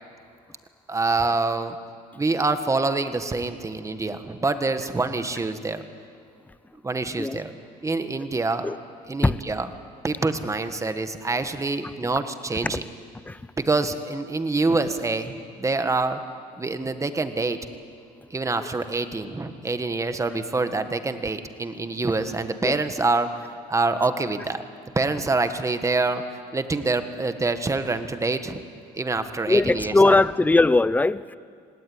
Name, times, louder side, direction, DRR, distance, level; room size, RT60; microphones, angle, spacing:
voice 1, 0.9-1.8 2.1-5.8 6.8-7.5 7.8-8.7 9.1-9.7 10.0-12.8 13.6-16.2 16.6-17.6 18.3-24.6 24.9-26.2 26.5-28.6 28.9-30.2, right 3 dB, 20° right, 9 dB, 1.6 m, -26 dB
voice 2, 29.5-31.4, left 2 dB, 10° left, 17 dB, 0.6 m, -20 dB
26.5 x 18.5 x 9.7 m, 2.3 s
cardioid pair, 110°, 17 cm